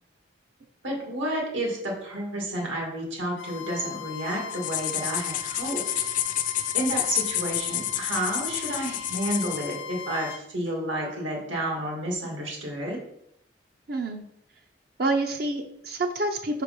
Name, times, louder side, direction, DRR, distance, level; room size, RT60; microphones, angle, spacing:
voice 1, 0.8-5.8 6.4-13.0, right 1 dB, 80° right, -1 dB, 2.2 m, -31 dB
Bowed string instrument, 3.4-10.4, left 8 dB, 80° left, 0.6 m, -39 dB
sound 1, 4.5-9.8, left 12 dB, 40° left, 0.3 m, -29 dB
voice 2, 13.9-14.2 15.0-16.6, right 2 dB, 50° right, 4 dB, 0.6 m, -27 dB
5.4 x 4.6 x 5.2 m, 0.75 s
head